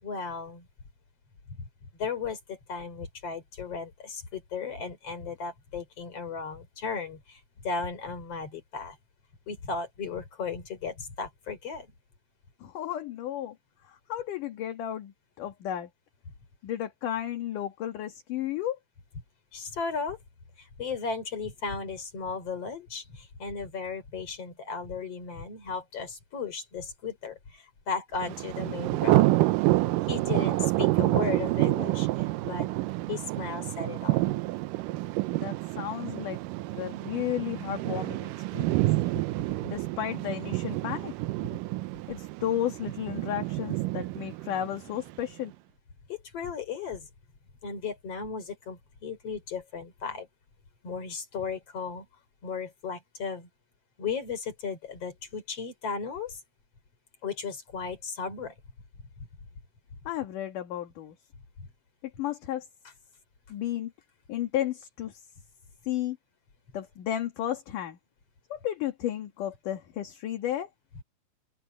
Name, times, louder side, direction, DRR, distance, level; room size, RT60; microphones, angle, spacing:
voice 1, 0.0-0.7 2.0-9.0 9.5-11.9 19.5-20.2 20.6-29.3 30.1-32.7 33.1-34.2 46.1-47.1 47.6-50.3 50.8-52.1 52.4-53.5 54.0-56.4 57.2-58.5 61.6-61.7, left 5 dB, 45° left, 5.2 m, -35 dB
voice 2, 12.6-13.6 13.9-15.9 16.6-18.8 35.3-36.4 36.7-38.8 39.7-41.1 42.1-45.5 60.1-61.1 62.2-62.7 63.5-63.9 64.3-65.2 65.9-66.2 66.7-68.0 68.5-70.7, left 11 dB, 65° left, 3.2 m, -33 dB
Thunder, 28.2-45.2, right 19 dB, 80° right, 2.1 m, -28 dB
open air
omnidirectional pair, 4.1 m